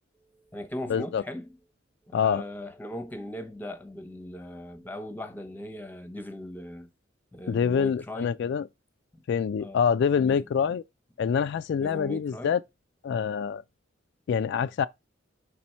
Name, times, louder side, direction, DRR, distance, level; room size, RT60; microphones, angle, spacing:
voice 1, 0.2-1.6 2.1-6.9 7.3-8.4 9.6-9.8 10.2-10.4 11.8-12.5, left 1 dB, 10° left, 0.8 m, -39 dB
voice 2, 0.9-1.2 2.1-2.4 7.5-8.7 9.3-10.8 11.2-12.6 13.0-13.6 14.3-14.9, left 7 dB, 65° left, 0.3 m, -25 dB
5.2 x 4.2 x 4.4 m
head